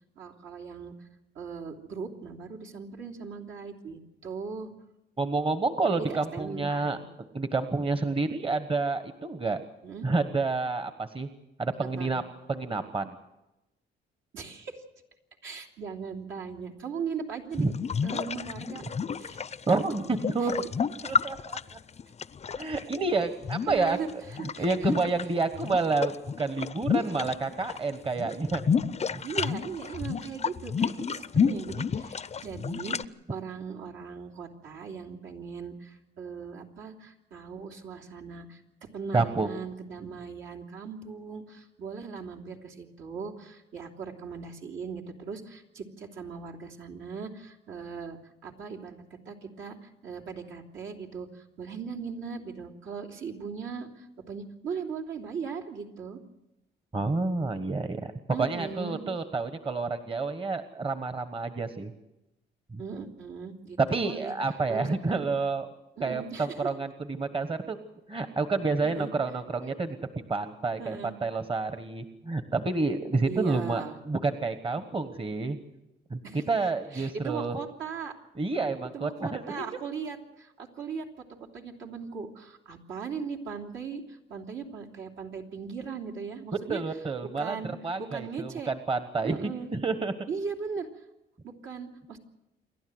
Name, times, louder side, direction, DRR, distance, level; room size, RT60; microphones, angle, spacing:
voice 1, 0.2-1.1 1.3-4.7 5.9-7.0 9.8-10.1 12.0-12.1 14.3-14.8 15.4-17.7 18.0-18.9 19.2-19.4 20.4-20.5 23.7-24.1 24.4-25.1 27.0-27.4 29.2-38.6 38.9-56.2 58.3-59.0 62.8-64.3 64.7-65.3 66.0-66.7 68.8-69.1 70.8-71.1 73.2-74.0 76.2-76.4 76.9-78.1 78.9-81.2 81.5-86.8 87.4-88.7 89.2-89.7 90.3-91.0 91.4-92.2, right 5 dB, 70° right, 0 dB, 3.0 m, -38 dB
voice 2, 5.2-7.0 7.3-9.6 10.0-11.3 11.6-12.2 12.5-13.2 17.6-17.7 19.7-20.5 21.0-21.6 22.6-24.0 24.4-28.6 29.1-29.2 39.1-39.5 56.9-58.1 58.4-61.9 62.7-62.8 63.8-65.7 66.0-67.8 68.1-70.0 70.3-75.6 76.1-77.6 78.4-79.7 86.7-87.5 87.8-90.1, right 3 dB, 25° right, 10 dB, 1.2 m, -29 dB
sound 1, 17.5-23.0 23.4-25.2 25.5-27.8 28.1-33.0, left 6 dB, 35° left, 0.6 m, -30 dB
28.0 x 12.0 x 7.9 m, 0.93 s
cardioid pair, 90°, 20 cm